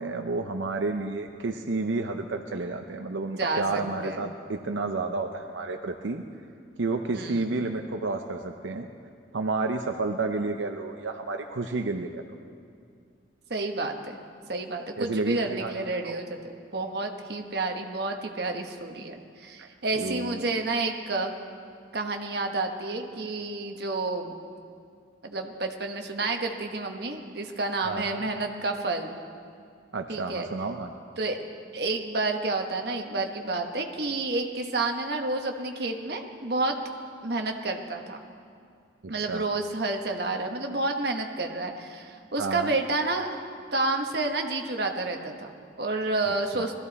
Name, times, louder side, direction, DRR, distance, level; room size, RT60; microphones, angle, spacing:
voice 1, 0.0-6.2 6.8-8.9 9.3-12.2 15.0-15.7 16.0-16.2 19.6-19.7 19.9-20.4 27.8-28.3 29.9-30.9 39.0-39.5 42.4-42.7 46.5-46.7, right 3 dB, 85° right, 4 dB, 0.7 m, -31 dB
voice 2, 3.4-4.2 7.1-7.4 13.5-14.2 14.5-16.4 16.7-21.3 21.9-24.4 25.2-29.2 30.1-30.5 31.2-31.4 31.7-36.8 37.2-38.2 39.1-43.4 43.7-46.8, right 2 dB, 60° right, 4 dB, 1.2 m, -30 dB
21.0 x 14.0 x 4.2 m, 2.3 s
head